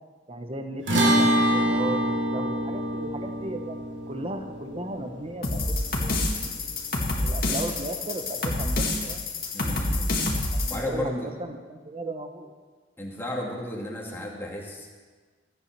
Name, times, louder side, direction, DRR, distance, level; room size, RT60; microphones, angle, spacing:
voice 1, 0.3-3.8 4.1-6.7 7.2-9.2 10.5-12.5, right 1 dB, 30° right, 6 dB, 1.1 m, -36 dB
sound 1, 0.9-7.4, right 1 dB, 80° right, 2.6 m, -26 dB
sound 2, 5.4-10.8, left 2 dB, 55° left, 2.1 m, -27 dB
voice 2, 9.5-10.1 10.7-11.3 13.0-14.9, left 1 dB, 15° left, -3 dB, 2.2 m, -33 dB
14.5 x 9.0 x 6.0 m, 1.4 s
head